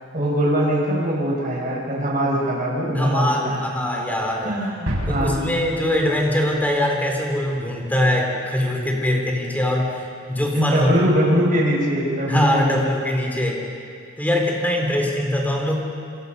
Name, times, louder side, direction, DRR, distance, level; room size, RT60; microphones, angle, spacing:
voice 1, 0.1-3.6 4.4-5.5 10.5-13.0, equal, 40° right, -3 dB, 6.4 m, -22 dB
voice 2, 2.9-4.5 5.1-10.0 10.3-10.9 12.3-13.6 14.2-15.7, left 1 dB, 10° left, 0 dB, 3.7 m, -22 dB
sound 1, 4.9-6.7 7.0-7.1, equal, 80° right, 6.9 m, -29 dB
27.0 x 26.5 x 5.6 m, 2.4 s
head